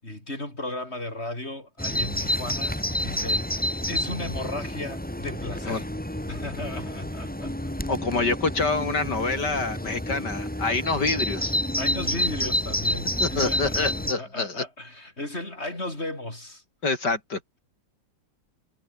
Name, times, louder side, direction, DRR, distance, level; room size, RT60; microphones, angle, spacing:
voice 1, 0.0-5.9 6.3-7.5 11.7-16.6, left 1 dB, 35° left, 7.7 m, -35 dB
Bird vocalization bird call bird song, 1.8-14.1, left 1 dB, 5° left, 2.0 m, -29 dB
voice 2, 7.9-11.5 13.2-14.6 16.8-17.4, left 3 dB, 60° left, 4.1 m, -26 dB
omnidirectional pair, 2.0 m